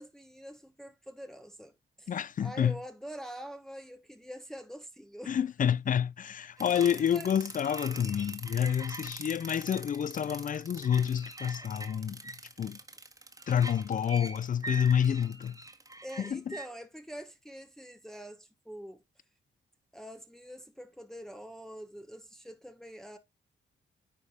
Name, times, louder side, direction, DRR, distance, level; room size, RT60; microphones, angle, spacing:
voice 1, 0.0-2.1 2.4-5.4 6.6-7.3 16.0-19.0 19.9-23.2, equal, ahead, 1.0 m, -45 dB
voice 2, 2.1-2.8 5.3-12.2 12.6-12.8 13.5-15.6 16.2-16.5, left 8 dB, 45° left, 0.4 m, -28 dB
sound 1, 6.6-16.7, right 2 dB, 20° right, 1.5 m, -43 dB
9.8 x 3.3 x 4.1 m
cardioid pair, 55°, 19 cm